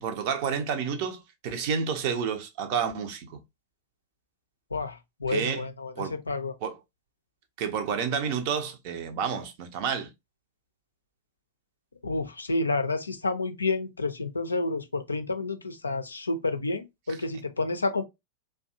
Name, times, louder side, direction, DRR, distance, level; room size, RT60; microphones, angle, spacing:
voice 1, 0.0-3.4 5.3-5.6 6.0-6.1 6.6-6.8 7.6-10.1, right 7 dB, 45° right, 0.5 m, -30 dB
voice 2, 4.7-6.5 12.0-18.0, left 3 dB, 80° left, 0.4 m, -30 dB
2.6 x 2.2 x 2.4 m
figure-of-eight pair, 90°, 0 cm